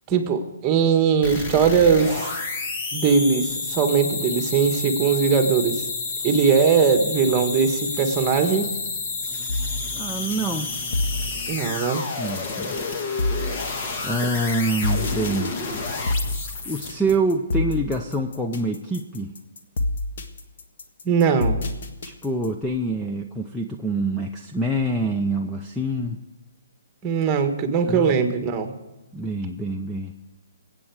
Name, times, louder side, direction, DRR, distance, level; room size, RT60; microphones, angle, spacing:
voice 1, 0.1-2.3 2.9-5.8 6.2-8.7 11.5-12.0 21.0-21.6 27.0-28.7, right 6 dB, 20° right, 6 dB, 1.5 m, -20 dB
sound 1, 1.2-17.1, left 3 dB, 35° left, 1.7 m, -30 dB
sound 2, 9.5-22.6, left 2 dB, 60° left, 1.7 m, -28 dB
voice 2, 9.9-10.7 12.2-12.8 14.0-15.5 16.7-19.3 22.0-26.2 27.8-28.1 29.1-30.1, right 1 dB, 5° left, 1 dB, 0.7 m, -26 dB
21.0 x 8.9 x 4.8 m, 1.1 s
hypercardioid pair, 155°, 0 cm